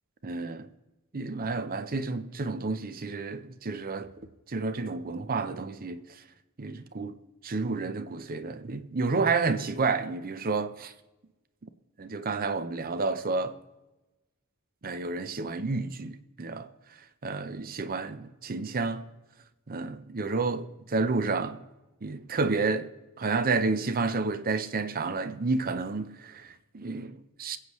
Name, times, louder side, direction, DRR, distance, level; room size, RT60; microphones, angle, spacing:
voice 1, 0.2-0.7 1.1-4.1 4.5-6.0 6.6-7.1 7.4-10.9 12.0-13.6 14.8-16.7 17.2-19.0 19.7-20.7 20.9-21.6 22.0-22.9 23.2-27.6, right 3 dB, 45° right, 0.7 m, -30 dB
22.5 x 8.2 x 3.1 m
head